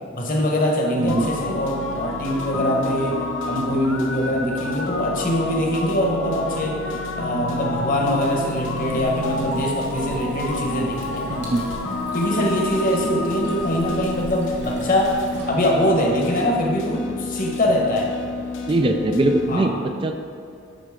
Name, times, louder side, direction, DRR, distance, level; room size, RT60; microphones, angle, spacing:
voice 1, 0.1-6.8 7.2-11.5 12.1-15.2 15.5-18.1 19.5-19.7, equal, 45° left, 0 dB, 1.2 m, -23 dB
sound 1, 1.0-19.6, left 3 dB, 80° left, 0.7 m, -29 dB
voice 2, 1.0-1.3 11.3-11.7 18.7-20.2, right 2 dB, 25° right, 5 dB, 0.4 m, -21 dB
sound 2, 8.3-16.0, right 1 dB, 65° right, 1.9 m, -41 dB
11.5 x 4.3 x 3.6 m, 2.3 s
head